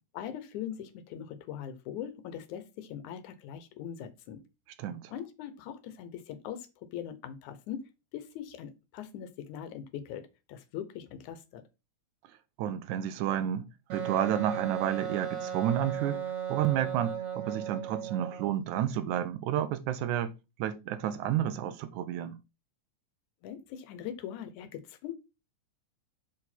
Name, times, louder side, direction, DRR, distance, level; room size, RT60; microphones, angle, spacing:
voice 1, 0.1-4.4 5.1-11.6 23.4-25.1, left 9 dB, 85° left, 2.3 m, -41 dB
voice 2, 4.8-5.1 12.6-13.7 13.9-16.2 16.5-20.3 20.6-22.4, right 10 dB, 90° right, 2.2 m, -30 dB
Wind instrument woodwind instrument, 13.9-18.5, right 8 dB, 70° right, 2.3 m, -36 dB
6.3 x 5.0 x 4.2 m
omnidirectional pair, 3.4 m